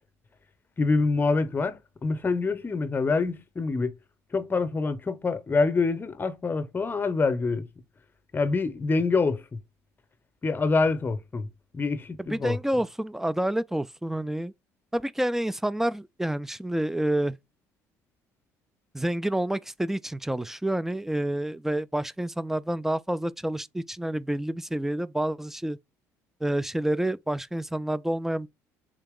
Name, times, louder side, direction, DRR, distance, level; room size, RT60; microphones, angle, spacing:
voice 1, 0.8-3.9 4.3-7.7 8.3-9.4 10.4-11.5 11.7-12.6, left 4 dB, 25° left, 0.7 m, -26 dB
voice 2, 12.2-14.5 14.9-17.4 18.9-25.8 26.4-28.5, right 1 dB, 5° right, 0.3 m, -28 dB
3.7 x 2.9 x 3.6 m
hypercardioid pair, 65°, 8 cm